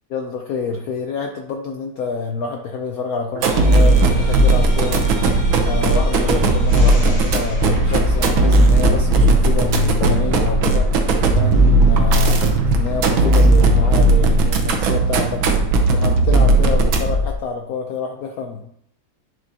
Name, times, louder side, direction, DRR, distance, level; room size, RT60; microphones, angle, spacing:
voice 1, 0.1-18.7, left 5 dB, 75° left, 3 dB, 0.8 m, -27 dB
sound 1, 3.4-15.5, left 4 dB, 35° left, 3.5 m, -29 dB
sound 2, 3.4-17.3, right 2 dB, 80° right, 1.6 m, -16 dB
10.5 x 4.5 x 2.8 m, 0.72 s
omnidirectional pair, 2.2 m